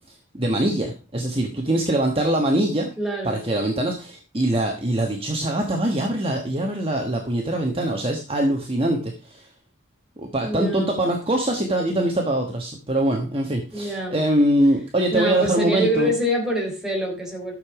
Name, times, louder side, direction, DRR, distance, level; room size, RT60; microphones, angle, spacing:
voice 1, 0.3-2.9 3.2-9.5 10.2-16.1, right 1 dB, 25° right, 1 dB, 1.3 m, -23 dB
voice 2, 3.0-3.4 10.4-11.0 13.7-14.2 15.1-17.5, right 1 dB, 5° right, -1 dB, 3.5 m, -25 dB
12.5 x 6.9 x 4.8 m, 0.32 s
head